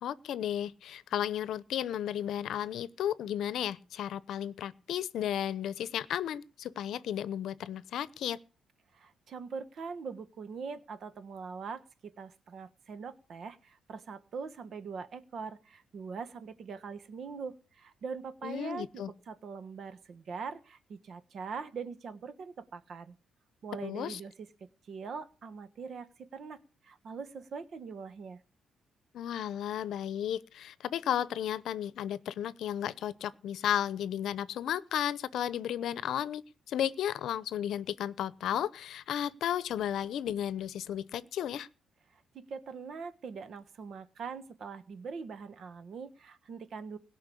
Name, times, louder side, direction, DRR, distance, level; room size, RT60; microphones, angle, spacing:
voice 1, 0.0-8.4 18.4-19.1 23.8-24.2 29.1-36.4 36.7-41.7, left 10 dB, 75° left, 0.7 m, -34 dB
voice 2, 8.9-23.1 23.6-24.5 24.9-28.4 42.1-47.0, right 5 dB, 60° right, 1.2 m, -42 dB
17.0 x 5.7 x 8.4 m
cardioid pair, 90°, 0 cm